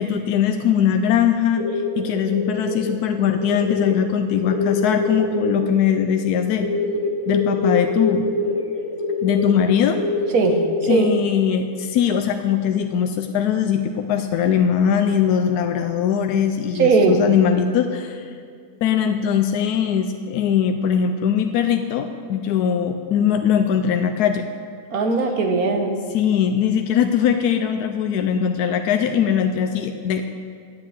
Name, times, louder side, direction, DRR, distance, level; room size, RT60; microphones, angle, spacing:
voice 1, 0.0-6.7 7.3-8.3 9.2-10.0 10.9-18.3 18.8-24.5 26.1-30.3, left 8 dB, 85° left, 6 dB, 1.1 m, -21 dB
sound 1, 1.6-3.1 3.4-3.9 4.5-10.9 11.6-11.9, left 3 dB, 25° left, 1.1 m, -24 dB
voice 2, 10.3-11.1 16.7-17.2 24.9-25.9, right 3 dB, 70° right, 5 dB, 1.6 m, -19 dB
9.6 x 8.4 x 8.0 m, 2.2 s
omnidirectional pair, 1.6 m